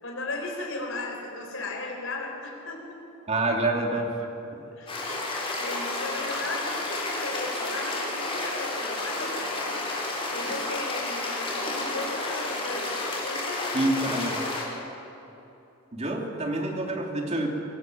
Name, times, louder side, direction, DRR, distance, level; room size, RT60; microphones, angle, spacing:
voice 1, 0.0-3.0 4.7-5.3 5.6-9.8 10.3-13.8, left 2 dB, 70° left, 1 dB, 4.3 m, -36 dB
voice 2, 3.3-4.3 13.7-14.4 15.9-17.5, right 2 dB, 30° right, 1 dB, 2.8 m, -27 dB
sound 1, 4.9-14.6, left 2 dB, 25° left, 4.1 m, -31 dB
23.0 x 16.0 x 7.7 m, 2.9 s
head